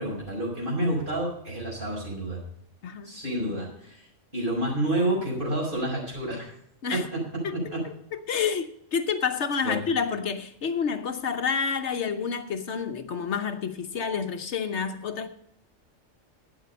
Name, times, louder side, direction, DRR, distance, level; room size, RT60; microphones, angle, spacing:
voice 1, 0.0-2.4 3.0-4.1 4.3-6.5 7.1-7.2 7.5-7.8 9.6-9.8, right 1 dB, 40° right, 5.9 m, -29 dB
voice 2, 2.8-3.1 6.8-7.1 7.4-15.3, left 6 dB, 65° left, 1.1 m, -29 dB
11.5 x 8.9 x 5.4 m
omnidirectional pair, 1.3 m